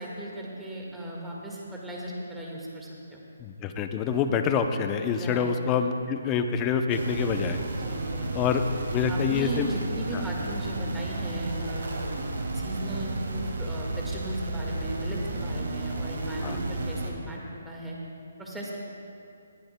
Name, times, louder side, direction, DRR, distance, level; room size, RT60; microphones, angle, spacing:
voice 1, 0.0-3.2 5.2-5.5 7.8-8.4 9.0-11.9 12.5-17.4 17.6-18.0 18.4-18.9, right 1 dB, 5° right, -3 dB, 1.7 m, -36 dB
voice 2, 3.4-7.6 8.3-8.6 8.9-9.7 16.4-16.6, left 6 dB, 20° left, 7 dB, 0.6 m, -26 dB
sound 1, 6.9-17.1, right 2 dB, 85° right, 2.3 m, -32 dB
20.0 x 14.0 x 2.2 m, 2.6 s
hypercardioid pair, 160°, 0 cm